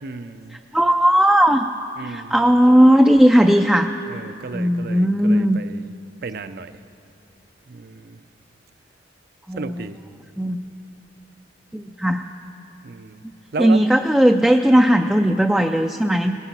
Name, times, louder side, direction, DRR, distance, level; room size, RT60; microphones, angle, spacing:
voice 1, 0.0-0.6 2.0-2.5 4.1-5.9 6.2-6.8 7.7-8.2 9.5-10.0 12.8-13.2 13.5-13.8, right 4 dB, 60° right, 11 dB, 0.5 m, -33 dB
voice 2, 0.7-1.7 2.0-3.9 4.5-5.6 9.5-9.8 10.4-10.6 11.7-12.2 13.6-16.4, equal, 5° right, 4 dB, 0.3 m, -16 dB
19.5 x 9.9 x 5.9 m, 2.7 s
head